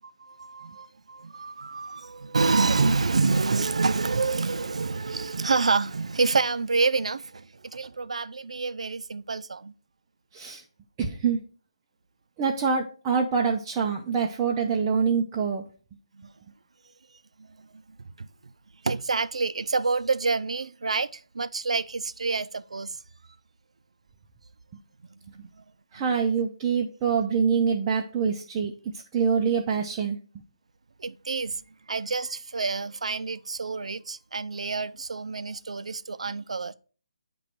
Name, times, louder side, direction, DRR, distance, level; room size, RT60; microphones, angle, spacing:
voice 1, 0.2-9.7 16.2-16.3 17.4-17.5 17.7-18.3 18.8-23.0 25.2-25.5 31.0-31.6 31.9-36.7, right 4 dB, 85° right, 0.4 m, -28 dB
voice 2, 11.0-11.4 12.4-15.6 25.9-28.7 29.1-30.2, right 6 dB, 10° right, 0.3 m, -25 dB
8.6 x 3.0 x 4.4 m
hypercardioid pair, 175°, 3 cm